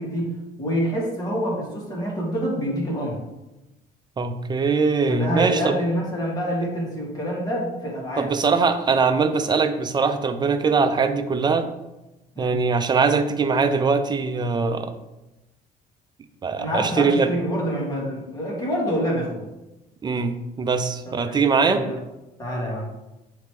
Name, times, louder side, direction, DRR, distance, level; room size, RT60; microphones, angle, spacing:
voice 1, 0.0-3.2 5.1-8.3 12.3-12.6 16.6-19.4 21.0-22.0 22.4-22.9, equal, 25° left, -4 dB, 2.2 m, -27 dB
voice 2, 4.2-5.8 8.2-11.7 12.4-14.9 16.4-17.3 20.0-21.8, right 4 dB, 25° right, 8 dB, 0.5 m, -21 dB
6.8 x 3.2 x 4.7 m, 0.99 s
cardioid pair, 110°, 17 cm